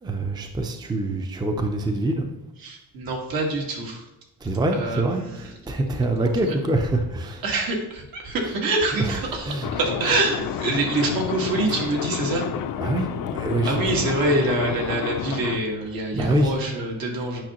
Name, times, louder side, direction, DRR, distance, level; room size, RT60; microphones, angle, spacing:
voice 1, 0.0-2.3 4.4-7.4 9.1-9.2 9.4-9.7 12.8-14.0 16.1-16.5, right 1 dB, 10° right, 5 dB, 0.5 m, -25 dB
voice 2, 2.6-4.0 4.7-5.5 6.2-6.6 7.4-12.5 13.7-17.4, right 2 dB, 70° right, 0 dB, 1.8 m, -26 dB
sound 1, 9.6-15.6, left 9 dB, 65° left, 0.6 m, -29 dB
8.7 x 5.7 x 3.0 m, 0.90 s
cardioid pair, 140°, 37 cm